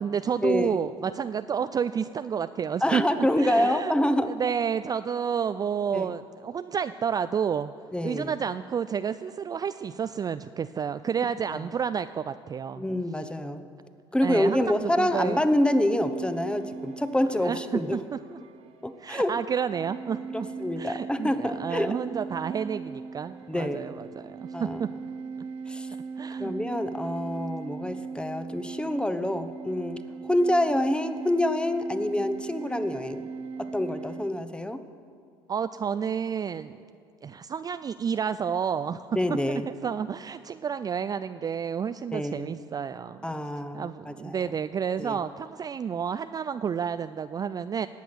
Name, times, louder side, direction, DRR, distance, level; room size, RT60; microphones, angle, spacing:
voice 1, 0.0-7.7 8.0-12.9 14.2-15.4 17.4-18.4 19.0-20.5 20.8-24.9 26.2-26.5 35.5-36.8 37.2-39.2 39.5-43.2 43.7-47.9, right 7 dB, 30° right, 11 dB, 0.4 m, -30 dB
voice 2, 2.8-4.3 5.9-6.1 7.9-8.3 11.5-11.6 12.8-13.6 14.1-18.0 18.8-19.3 20.3-22.0 23.5-24.0 24.5-24.8 25.7-25.9 26.4-33.3 33.6-34.8 39.1-39.6 42.1-42.5 43.2-44.4 45.0-45.2, left 1 dB, 5° left, 10 dB, 1.0 m, -27 dB
sound 1, 15.3-34.3, right 5 dB, 50° right, 0.9 m, -39 dB
19.0 x 8.4 x 6.2 m, 2.2 s
hypercardioid pair, 65°, 14 cm